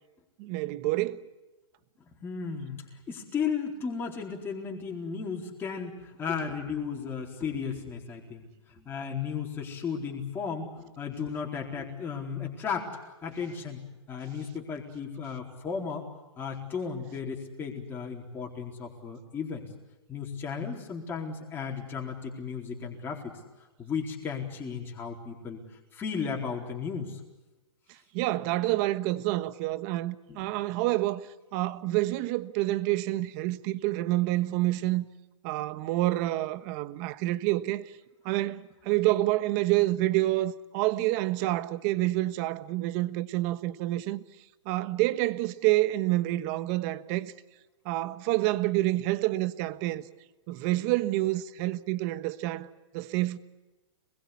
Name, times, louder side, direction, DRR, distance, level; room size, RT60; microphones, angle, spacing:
voice 1, 0.4-1.2 28.1-35.0 35.4-37.9 38.2-44.2 44.6-47.3 47.8-50.0 50.5-53.4, right 17 dB, 30° right, 1.3 m, -28 dB
voice 2, 2.2-12.9 13.2-13.8 14.1-16.0 16.4-19.7 20.1-23.4 23.8-25.6 25.9-27.2 30.3-30.5, left 6 dB, 15° left, 4.1 m, -35 dB
27.5 x 21.5 x 8.5 m
hypercardioid pair, 155°, 16 cm